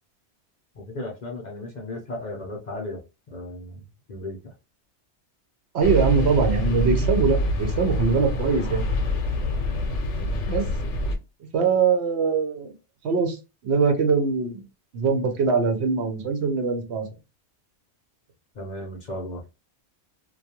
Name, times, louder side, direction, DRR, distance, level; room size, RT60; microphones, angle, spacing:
voice 1, 0.7-3.0 3.3-3.8 4.1-4.5 10.2-10.4 18.5-19.4, left 1 dB, 50° left, 0.6 m, -35 dB
voice 2, 5.7-8.9 10.5-10.7 11.5-12.7 13.0-13.4 13.6-14.6 14.9-17.1, right 5 dB, 70° right, 0.9 m, -22 dB
sound 1, 5.8-11.2, equal, 80° left, 0.9 m, -25 dB
2.3 x 2.2 x 2.7 m
omnidirectional pair, 1.2 m